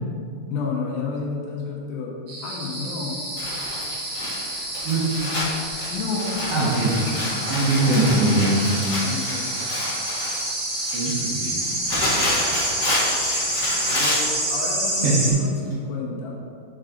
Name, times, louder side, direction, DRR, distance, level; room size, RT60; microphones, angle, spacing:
voice 1, 0.5-2.2 2.4-3.2 4.8-4.9 5.9-6.4 9.0-9.5 11.4-11.8 13.9-16.3, left 4 dB, 75° left, -2 dB, 2.7 m, -31 dB
sound 1, 2.3-15.3, right 1 dB, 55° right, 1.6 m, -28 dB
Crumpling crinkling, 3.4-14.4 15.2-15.3 15.7-15.8, left 1 dB, 40° left, 1.5 m, -29 dB
voice 2, 6.5-7.0 7.4-8.7 10.9-11.6 15.0-15.1, right 2 dB, 80° right, -7 dB, 1.3 m, -21 dB
8.8 x 4.7 x 3.9 m, 2.2 s
omnidirectional pair, 4.5 m